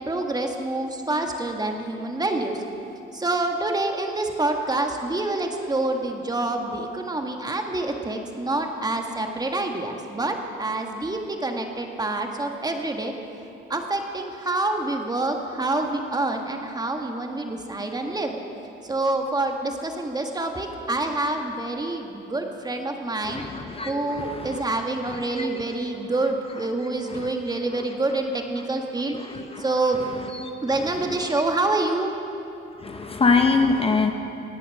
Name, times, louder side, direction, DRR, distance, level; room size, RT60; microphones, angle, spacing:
voice 1, 0.0-2.6 3.1-13.1 13.7-18.4 18.8-23.4 23.8-29.1 29.6-30.0 30.6-32.1, right 2 dB, 20° right, 3 dB, 1.6 m, -27 dB
voice 2, 23.3-24.6 25.4-25.5 27.1-27.3 29.2-29.6 30.4-30.5 32.8-34.1, left 4 dB, 30° left, 5 dB, 0.8 m, -24 dB
19.0 x 8.5 x 6.5 m, 2.8 s
cardioid pair, 90°, 20 cm